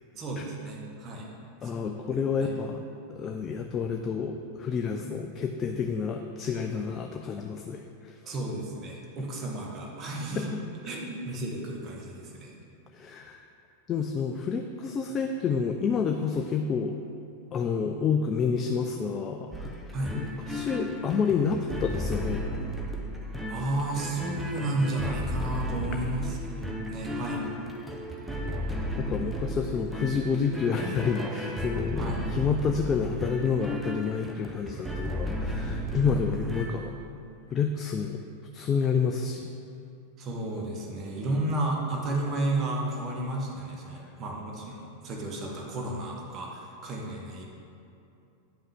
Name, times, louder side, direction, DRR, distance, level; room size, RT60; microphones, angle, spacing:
voice 1, 0.1-1.3 1.6-2.0 2.3-2.6 8.3-10.5 10.8-12.5 19.9-20.1 23.5-27.4 31.9-32.3 36.1-36.5 40.2-47.4, right 2 dB, 30° right, -1 dB, 1.3 m, -33 dB
voice 2, 1.6-2.8 3.2-8.3 10.4-10.5 12.9-13.4 13.9-16.9 17.5-19.7 20.1-22.4 29.0-36.9 37.5-38.2 38.5-39.5, left 6 dB, 25° left, 4 dB, 0.4 m, -29 dB
sound 1, 19.5-36.7, equal, 5° right, 0.7 m, -34 dB
9.3 x 5.5 x 3.6 m, 2.6 s
figure-of-eight pair, 90°, 0 cm